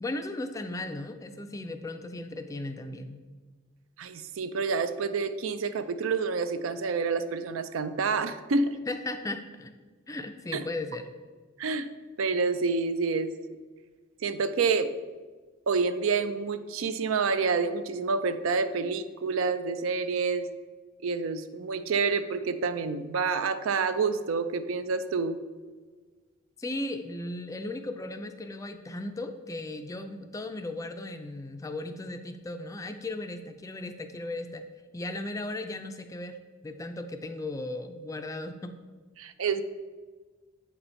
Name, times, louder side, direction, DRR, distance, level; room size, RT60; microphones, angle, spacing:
voice 1, 0.0-3.2 8.9-9.7 10.1-11.0 26.6-34.6 34.9-36.4 36.6-38.8, left 2 dB, 15° left, 8 dB, 0.3 m, -36 dB
voice 2, 4.0-8.8 10.5-10.6 11.6-11.9 12.2-13.3 14.2-14.9 15.7-20.5 21.0-25.4 39.2-39.6, right 4 dB, 85° right, 11 dB, 0.4 m, -28 dB
7.7 x 4.1 x 4.4 m, 1.4 s
head